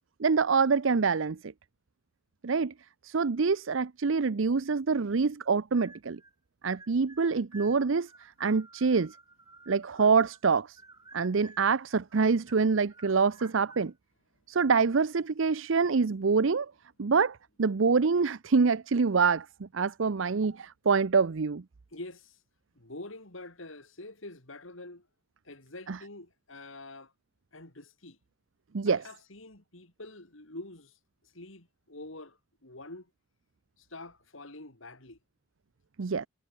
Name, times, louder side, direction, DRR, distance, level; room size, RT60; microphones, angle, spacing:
voice 1, 0.2-1.5 2.4-2.7 3.0-6.2 6.6-9.1 9.7-10.8 11.1-13.9 14.5-16.7 17.0-21.6 25.9-26.0 28.7-29.0 36.0-36.3, right 5 dB, 65° right, 0.6 m, -26 dB
sound 1, 5.7-6.3 6.6-10.5 10.8-11.7 12.1-13.9, right 3 dB, 20° right, 6.6 m, -54 dB
voice 2, 21.9-22.4 22.8-25.1 25.4-27.1 27.5-28.2 28.9-33.1 33.8-35.2, left 2 dB, 70° left, 4.0 m, -46 dB
head